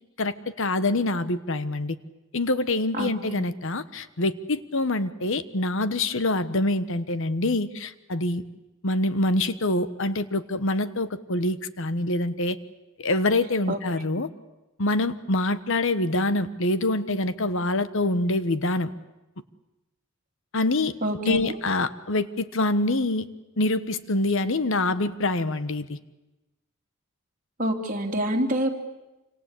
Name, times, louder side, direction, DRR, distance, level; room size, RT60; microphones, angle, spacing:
voice 1, 0.2-2.0 2.3-8.4 8.8-12.6 13.0-14.3 14.8-18.9 20.5-20.9 21.2-23.3 23.6-26.0, left 2 dB, 65° left, 13 dB, 1.2 m, -25 dB
voice 2, 2.9-3.5 13.7-13.8 21.0-21.4 27.6-28.8, right 1 dB, 40° right, 2 dB, 3.1 m, -27 dB
27.5 x 26.0 x 8.4 m, 1.0 s
head